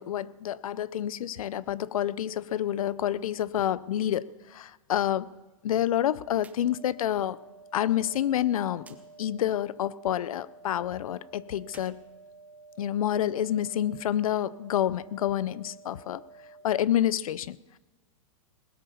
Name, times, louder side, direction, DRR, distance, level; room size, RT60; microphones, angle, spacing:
voice 1, 0.0-5.3 5.6-7.4 7.7-8.9 9.2-12.0 12.8-16.2 16.6-17.8, left 11 dB, 85° left, 21 dB, 0.6 m, -28 dB
sound 1, 6.4-6.7 7.0-7.1 8.8-9.0 11.6-12.9, right 5 dB, 10° right, 0.8 m, -55 dB
sound 2, 6.6-16.6, right 3 dB, 50° right, 4.0 m, -52 dB
19.5 x 8.4 x 7.0 m, 1.2 s
supercardioid pair, 160°, 18 cm